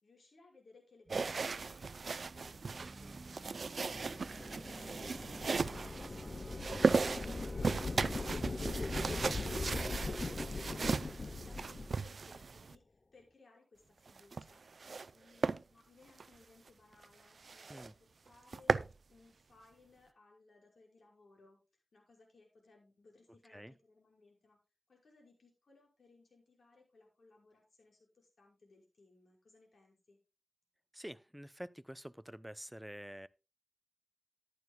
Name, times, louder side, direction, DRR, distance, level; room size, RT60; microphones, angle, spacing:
voice 1, 0.0-1.8 2.3-3.5 3.8-10.4 11.2-14.6 15.1-18.7 19.1-24.6 24.9-30.2, left 3 dB, 85° left, 5.7 m, -64 dB
sound 1, 1.1-8.0, right 2 dB, 25° right, 2.7 m, -54 dB
sound 2, 1.1-12.8 14.1-15.1 15.4-15.6 16.1-16.3 16.7-16.8 17.0-17.1 17.4-17.9 18.3-18.9, right 4 dB, 80° right, 0.4 m, -36 dB
sound 3, 3.9-12.0, left 3 dB, 50° left, 0.8 m, -40 dB
voice 2, 30.9-33.3, equal, 5° right, 0.5 m, -48 dB
14.0 x 11.5 x 2.3 m
wide cardioid pair, 75°, 0 cm